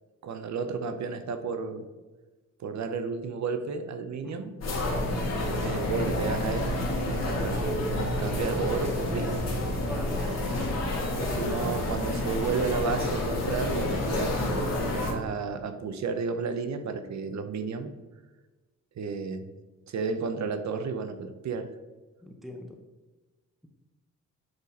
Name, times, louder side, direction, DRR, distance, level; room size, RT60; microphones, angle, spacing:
voice 1, 0.2-1.9 2.6-4.5 5.4-9.4 11.1-14.3 14.8-17.9 19.0-19.5 19.9-21.7, right 5 dB, 60° right, 8 dB, 0.7 m, -32 dB
voice 2, 4.2-4.5 4.9-5.2 9.9-10.6 22.2-22.7, equal, ahead, 3 dB, 0.7 m, -44 dB
sound 1, 4.6-15.1, left 1 dB, 55° left, 1.7 m, -29 dB
7.8 x 4.1 x 4.1 m, 1.2 s
wide cardioid pair, 130°, 31 cm